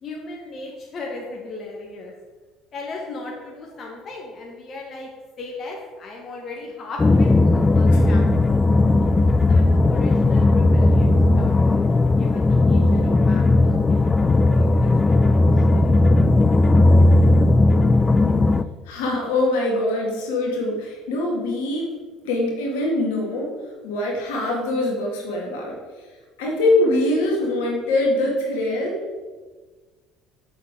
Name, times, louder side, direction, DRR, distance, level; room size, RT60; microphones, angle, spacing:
voice 1, 0.0-2.1 2.7-5.1 5.4-8.5 9.1-11.9 12.2-16.0, left 3 dB, 45° left, 0 dB, 1.4 m, -37 dB
sound 1, 7.0-18.6, left 2 dB, 25° left, 0.4 m, -16 dB
voice 2, 18.9-21.9 22.2-23.5 23.8-25.8 26.4-29.0, left 2 dB, 75° left, -1 dB, 2.2 m, -23 dB
7.3 x 6.8 x 4.8 m, 1.4 s
hypercardioid pair, 65°, 0 cm